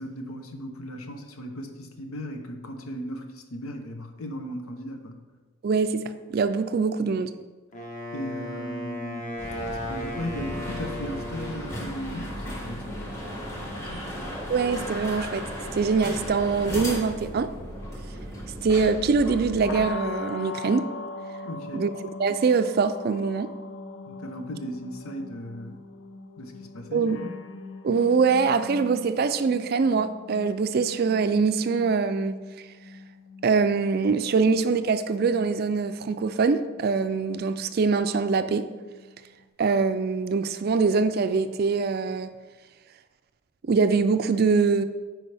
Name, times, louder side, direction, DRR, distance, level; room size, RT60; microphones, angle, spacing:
voice 1, 0.0-5.2 8.1-9.3 9.6-14.4 21.4-21.9 24.1-25.8 26.4-27.4, equal, 90° left, 0.8 m, -37 dB
voice 2, 5.6-7.3 14.5-15.4 15.7-17.5 18.6-20.9 21.7-21.9 22.2-23.5 26.9-27.2 27.8-32.4 33.4-38.7 39.6-42.3 43.6-44.8, right 4 dB, 45° right, 0.3 m, -23 dB
Wind instrument woodwind instrument, 7.7-11.9, left 1 dB, 35° left, 1.0 m, -35 dB
sound 1, 9.4-19.9, equal, 15° left, 1.2 m, -36 dB
sound 2, 19.6-39.4, left 3 dB, 65° left, 0.5 m, -41 dB
9.6 x 4.6 x 3.4 m
head